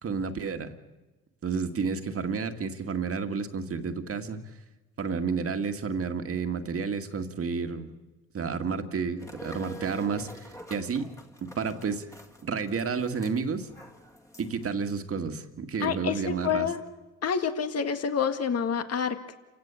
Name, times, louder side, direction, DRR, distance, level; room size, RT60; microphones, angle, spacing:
voice 1, 0.0-0.7 1.4-4.4 5.0-7.9 8.3-11.1 11.4-12.1 12.4-13.7 14.4-16.7, right 5 dB, 50° right, 7 dB, 2.0 m, -31 dB
sound 1, 9.2-14.7, equal, 10° left, 2.0 m, -47 dB
voice 2, 15.8-16.8 17.2-19.4, left 7 dB, 55° left, 8 dB, 1.9 m, -28 dB
28.5 x 16.5 x 8.3 m, 1.1 s
cardioid pair, 90°, 30 cm